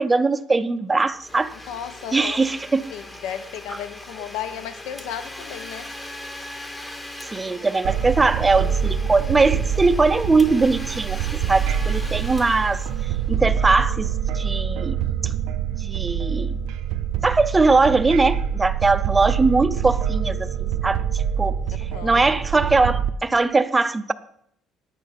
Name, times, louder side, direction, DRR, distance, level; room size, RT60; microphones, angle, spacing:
voice 1, 0.0-1.5 2.1-2.9 7.3-12.8 13.3-14.1 14.3-15.0 15.2-15.3 15.8-16.6 17.2-21.0 21.4-21.6 22.0-24.1, right 3 dB, 10° right, 0.4 m, -20 dB
Domestic sounds home sounds, 1.1-13.7, left 1 dB, 10° left, 0.9 m, -39 dB
voice 2, 1.7-2.5 2.9-5.9 21.8-22.2, left 9 dB, 75° left, 0.7 m, -34 dB
sound 1, 7.8-23.1, right 8 dB, 75° right, 0.6 m, -25 dB
10.5 x 8.5 x 5.7 m
cardioid pair, 170°, 0 cm